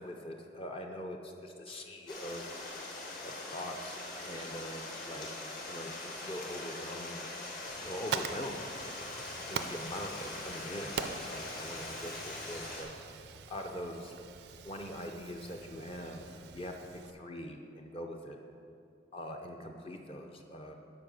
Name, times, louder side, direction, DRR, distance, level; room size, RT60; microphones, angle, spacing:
voice 1, 0.0-2.5 3.2-5.4 5.7-7.3 7.6-8.6 9.5-12.9 13.5-14.1 14.6-16.7 17.1-18.4 19.1-20.7, equal, 30° left, 2 dB, 0.6 m, -43 dB
Stream, 2.1-12.8, left 2 dB, 50° left, 1.6 m, -42 dB
Fire, 7.7-17.1, right 6 dB, 70° right, 0.4 m, -44 dB
8.5 x 5.4 x 6.4 m, 2.6 s
head